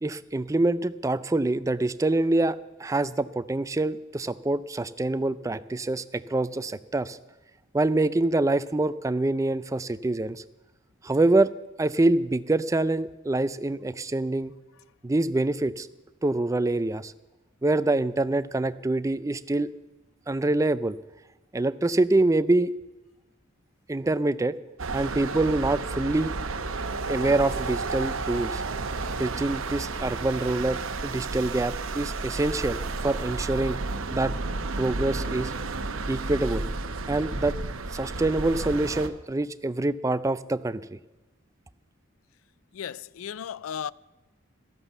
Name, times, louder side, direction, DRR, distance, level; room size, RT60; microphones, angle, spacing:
voice 1, 0.0-7.2 7.7-10.4 11.0-11.5 11.8-14.5 15.0-15.9 16.2-17.1 17.6-19.7 20.3-21.0 21.5-22.7 23.9-24.6 24.9-26.3 27.1-28.6 29.2-33.8 34.1-34.3 34.8-35.5 36.1-36.6 37.1-37.6 37.9-41.0, right 2 dB, 15° right, 0.4 m, -25 dB
sound 1, 24.8-39.1, right 3 dB, 80° right, 0.9 m, -32 dB
voice 2, 42.7-43.9, left 8 dB, 85° left, 0.4 m, -35 dB
13.5 x 11.0 x 7.1 m
head